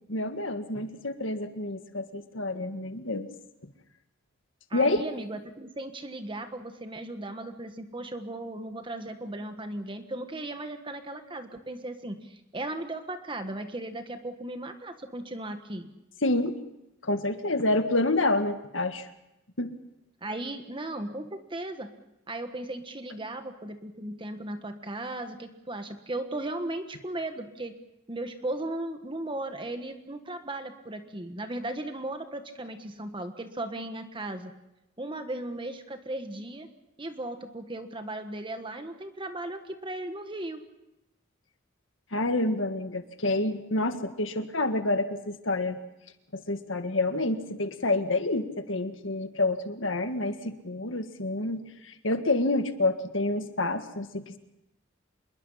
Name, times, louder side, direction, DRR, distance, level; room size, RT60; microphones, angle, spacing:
voice 1, 0.1-3.3 4.7-5.0 16.2-16.6 17.0-19.0 19.6-19.7 42.1-45.8 46.3-54.4, left 2 dB, 80° left, 8 dB, 1.8 m, -28 dB
voice 2, 4.7-15.9 20.2-21.9 22.3-27.7 28.1-34.5 35.0-36.7 37.0-40.6, right 1 dB, 25° right, 7 dB, 1.5 m, -36 dB
26.0 x 22.0 x 5.7 m, 0.88 s
head